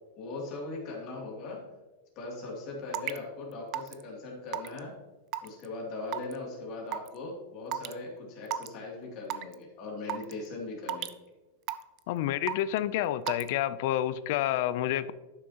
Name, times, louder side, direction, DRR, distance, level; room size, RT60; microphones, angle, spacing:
voice 1, 0.2-1.6 2.2-4.9 5.4-11.1, left 3 dB, 40° left, -2 dB, 2.5 m, -39 dB
Raindrop / Water tap faucet / Drip, 2.9-3.2 3.7-4.0 4.5-4.8 5.3-5.7 6.1-6.3 6.9-7.1 7.7-7.9 8.5-8.7 9.3-9.5 10.1-10.3 10.9-11.1 11.7-12.0 12.5-12.8 13.3-13.5, right 12 dB, 40° right, 0.4 m, -33 dB
voice 2, 12.1-15.1, left 12 dB, 55° left, 16 dB, 0.4 m, -29 dB
11.0 x 6.2 x 2.9 m, 1.2 s
supercardioid pair, 155°, 0 cm